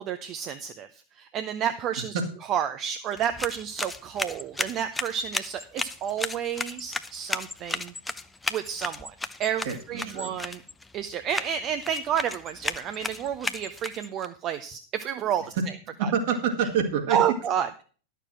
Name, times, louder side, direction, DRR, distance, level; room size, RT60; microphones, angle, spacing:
voice 1, 0.0-2.2 2.5-7.9 8.5-9.1 9.4-10.6 10.9-15.5 16.0-16.1 17.1-17.8, right 9 dB, 35° right, 9 dB, 0.7 m, -30 dB
sound 1, 3.1-14.3, left 3 dB, 10° left, 0.6 m, -35 dB
voice 2, 9.6-10.3 15.6-15.7 16.0-17.2, right 6 dB, 50° right, 4 dB, 2.2 m, -27 dB
11.5 x 6.8 x 6.1 m, 0.39 s
figure-of-eight pair, 90°, 0 cm